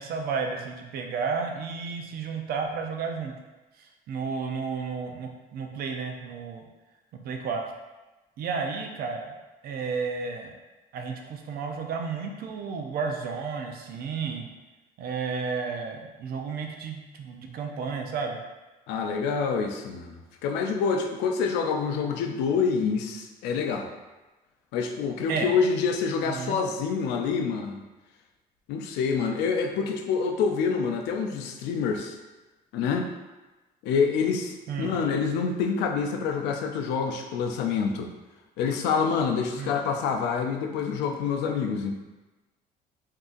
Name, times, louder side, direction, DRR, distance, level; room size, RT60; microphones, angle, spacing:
voice 1, 0.0-3.3 3.8-6.6 7.2-7.6 8.4-9.4 9.6-10.5 10.9-14.5 15.0-18.4 25.3-25.5 26.2-26.6 34.7-35.0 39.6-39.8, right 5 dB, 65° right, 3 dB, 0.5 m, -32 dB
voice 2, 18.9-23.9 24.7-27.8 28.7-32.2 32.7-33.1 33.8-38.1 38.6-41.9, left 5 dB, 90° left, 4 dB, 0.4 m, -27 dB
3.8 x 2.7 x 2.5 m, 1.1 s
cardioid pair, 110°, 17 cm